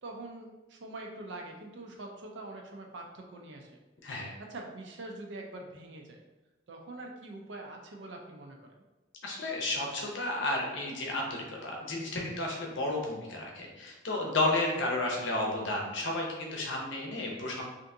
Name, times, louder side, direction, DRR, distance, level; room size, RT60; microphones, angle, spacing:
voice 1, 0.0-3.7 4.4-6.2 6.7-8.8 14.6-14.8, right 2 dB, 80° right, 1 dB, 0.6 m, -44 dB
voice 2, 4.0-4.3 9.2-17.7, left 2 dB, 85° left, -1 dB, 0.7 m, -32 dB
3.4 x 2.6 x 2.6 m, 1.1 s
head